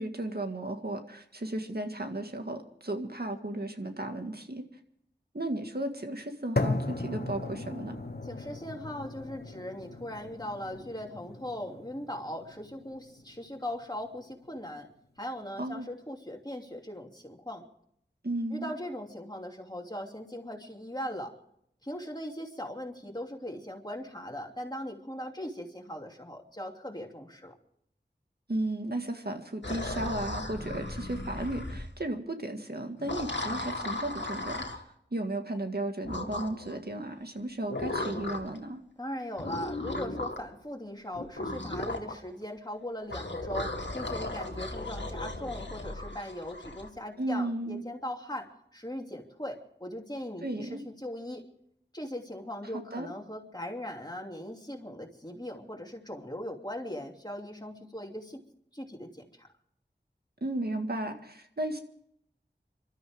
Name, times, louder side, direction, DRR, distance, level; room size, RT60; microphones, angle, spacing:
voice 1, 0.0-4.6 5.3-8.0 15.6-15.9 18.2-18.7 28.5-34.8 35.1-38.8 47.2-47.8 50.4-50.8 52.9-53.1 60.4-61.8, right 1 dB, 60° right, 5 dB, 1.9 m, -34 dB
sound 1, 6.6-14.6, left 2 dB, 60° left, 1.2 m, -37 dB
voice 2, 8.2-14.9 15.2-17.6 18.5-21.3 21.8-27.5 39.0-51.4 51.9-58.4 58.7-59.5, left 1 dB, 20° left, 1 dB, 2.9 m, -39 dB
sound 2, 29.6-31.9 33.0-34.8 36.0-36.8 37.7-38.6 39.4-40.5 41.1-42.2 43.1-46.9, left 2 dB, 85° left, 2.1 m, -36 dB
27.0 x 13.0 x 3.7 m, 0.72 s
wide cardioid pair, 40°, 18 cm